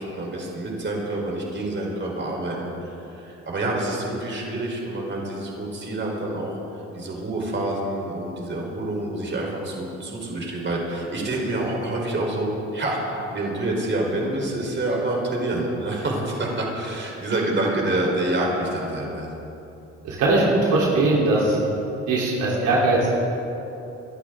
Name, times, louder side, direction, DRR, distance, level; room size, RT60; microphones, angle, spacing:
voice 1, 0.0-6.6 6.9-19.4, right 1 dB, 40° right, -1 dB, 4.1 m, -27 dB
voice 2, 20.0-21.6 22.1-23.1, right 2 dB, 80° right, -5 dB, 3.7 m, -20 dB
24.0 x 12.0 x 3.8 m, 2.9 s
supercardioid pair, 65°, 30 cm